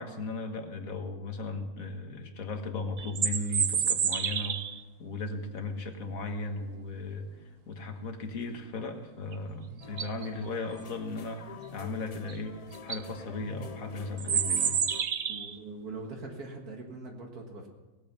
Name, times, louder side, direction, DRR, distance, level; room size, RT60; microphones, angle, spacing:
voice 1, 0.0-4.6 5.0-7.3 7.7-14.8, left 3 dB, 65° left, 5 dB, 1.9 m, -36 dB
sound 1, 3.0-4.8 9.3-9.4 9.8-10.3 12.3-12.4 12.7-13.0 14.2-15.6, right 7 dB, 50° right, 0.8 m, -29 dB
sound 2, 9.8-15.0, left 6 dB, 80° left, 0.3 m, -46 dB
voice 2, 15.3-17.7, right 3 dB, 75° right, 1 dB, 2.3 m, -42 dB
18.5 x 8.9 x 7.0 m, 1.1 s
omnidirectional pair, 1.6 m